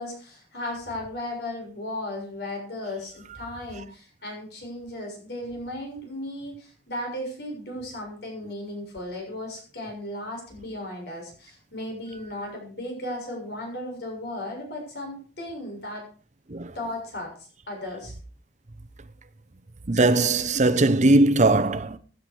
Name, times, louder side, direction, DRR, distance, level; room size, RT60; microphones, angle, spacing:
voice 1, 0.0-16.0 16.7-18.1, left 1 dB, 65° left, 6.9 m, -35 dB
voice 2, 19.9-22.0, right 2 dB, 45° right, 0.9 m, -19 dB
16.0 x 10.5 x 4.8 m
head